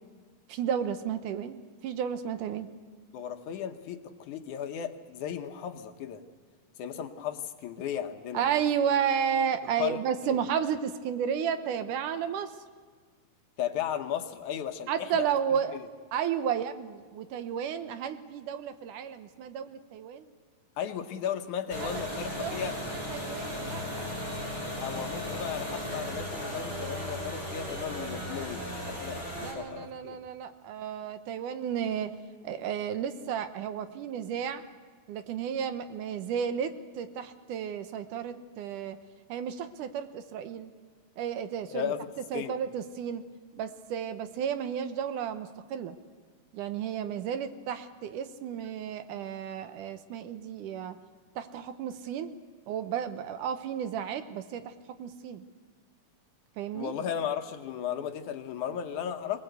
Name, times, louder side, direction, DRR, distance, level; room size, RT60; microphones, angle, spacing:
voice 1, 0.5-1.6 1.8-2.7 8.3-12.5 14.9-15.8 16.1-20.3 21.8-24.1 29.4-32.1 32.4-34.6 35.1-39.0 39.3-40.7 41.2-41.9 42.3-43.2 43.5-46.0 46.5-51.0 51.4-52.3 52.7-54.7 55.0-55.4 56.6-56.9, right 8 dB, 75° right, 10 dB, 2.4 m, -32 dB
voice 2, 3.1-6.2 6.8-8.4 9.8-10.4 13.6-15.3 15.7-15.9 20.8-22.8 24.8-30.2 41.7-42.6 56.7-59.4, left 9 dB, 70° left, 7 dB, 2.3 m, -35 dB
sound 1, 21.7-29.5, equal, 20° right, 5.3 m, -36 dB
24.0 x 19.5 x 8.0 m, 1.5 s
omnidirectional pair, 3.8 m